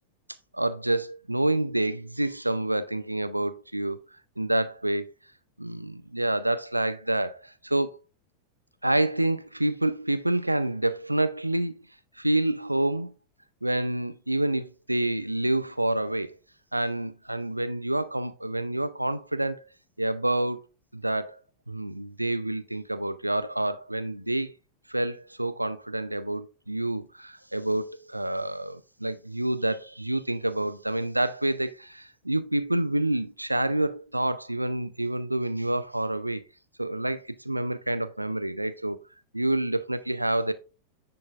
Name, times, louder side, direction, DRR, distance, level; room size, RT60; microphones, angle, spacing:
voice 1, 0.5-5.1 5.6-8.0 8.8-11.8 12.2-13.1 13.6-16.4 16.7-19.6 20.0-20.6 20.9-21.4 21.7-24.5 24.9-36.4 36.8-39.0 39.3-40.5, right 1 dB, 85° right, 0.3 m, -28 dB
10.0 x 3.8 x 2.4 m
figure-of-eight pair, 90°, 0 cm